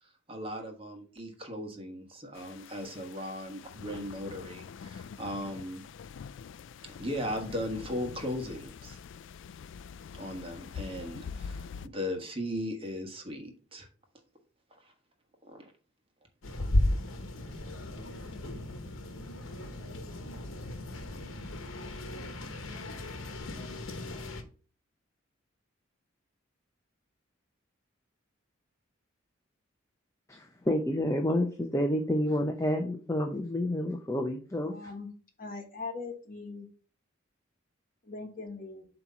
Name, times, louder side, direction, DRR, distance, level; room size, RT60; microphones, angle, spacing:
voice 1, 0.0-5.8 7.0-9.0 10.1-13.9 14.8-14.9 15.4-15.7, equal, 30° right, 1.4 m, -37 dB
sound 1, 2.3-11.9, left 6 dB, 65° left, 0.3 m, -45 dB
sound 2, 16.4-24.4, left 1 dB, 85° left, 1.0 m, -35 dB
voice 2, 30.3-34.9, left 1 dB, 15° left, 0.6 m, -29 dB
voice 3, 34.6-35.1 35.4-36.7 38.0-38.9, left 4 dB, 45° left, 1.3 m, -40 dB
7.8 x 3.0 x 5.6 m
head